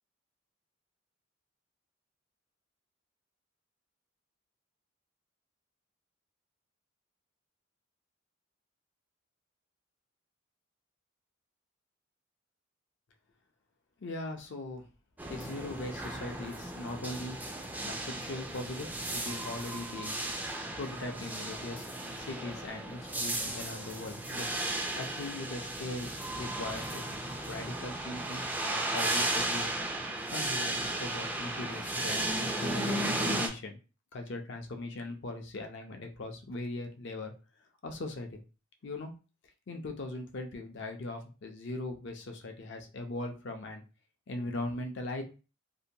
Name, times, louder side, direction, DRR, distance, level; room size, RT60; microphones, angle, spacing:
voice 1, 14.0-14.9 15.3-17.4 17.8-20.2 20.8-21.9 22.2-24.5 25.0-26.1 26.4-29.7 30.3-32.9 33.2-33.8 34.1-37.3 37.8-38.4 38.8-39.1 39.7-43.8 44.3-45.2, left 2 dB, 60° left, 4 dB, 0.5 m, -40 dB
sound 1, 15.2-33.5, right 1 dB, 10° right, 0.3 m, -35 dB
2.7 x 2.2 x 2.6 m, 0.33 s
head